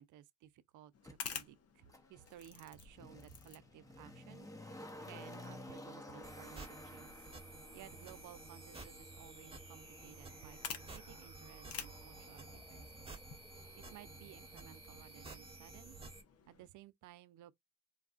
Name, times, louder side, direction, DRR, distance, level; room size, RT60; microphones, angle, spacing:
voice 1, 0.0-4.5 5.0-7.3 7.7-13.2 13.8-16.1 16.5-17.5, right 13 dB, 80° right, 0.5 m, -57 dB
sound 1, 0.9-16.7, left 7 dB, 55° left, 0.8 m, -53 dB
Motor vehicle (road), 1.0-1.2 1.9-14.8 15.1-15.2, left 1 dB, 10° left, 0.8 m, -55 dB
sound 2, 6.2-16.2, right 2 dB, 20° right, 1.2 m, -52 dB
3.9 x 2.3 x 2.4 m
cardioid pair, 90°, 30 cm